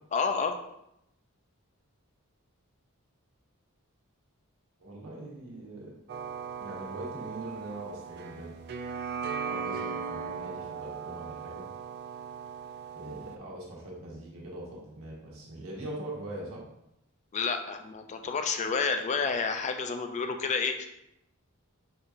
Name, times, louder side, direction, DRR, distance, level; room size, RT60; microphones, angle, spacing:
voice 1, 0.1-0.6 17.3-20.9, left 5 dB, 30° left, 6 dB, 0.3 m, -29 dB
voice 2, 4.8-5.9 6.6-8.5 9.4-11.6 12.9-16.6, right 1 dB, 70° right, -4 dB, 1.2 m, -42 dB
sound 1, 6.1-13.4, right 6 dB, 50° right, 0.3 m, -38 dB
5.3 x 2.8 x 2.4 m, 0.81 s
head